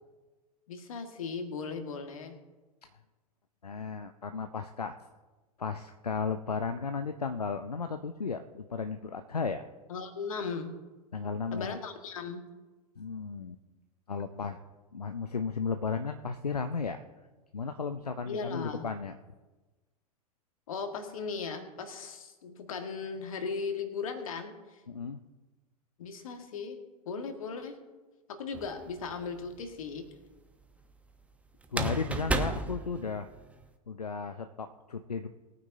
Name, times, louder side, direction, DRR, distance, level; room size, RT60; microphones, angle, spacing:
voice 1, 0.7-2.4 9.9-10.7 11.5-12.4 14.3-14.5 18.3-18.8 20.7-24.5 26.0-26.8 27.1-27.8 28.3-30.1, left 5 dB, 60° left, 6 dB, 1.8 m, -37 dB
voice 2, 3.6-5.1 5.6-9.6 11.1-11.8 13.0-13.6 14.1-14.6 14.9-17.0 17.5-19.2 24.9-25.2 31.7-33.3 33.9-35.3, left 5 dB, 80° left, 8 dB, 0.7 m, -34 dB
sound 1, 28.5-29.2 31.6-33.6, right 2 dB, 5° right, 0.9 m, -33 dB
21.0 x 9.5 x 2.8 m, 1.2 s
figure-of-eight pair, 95°, 20 cm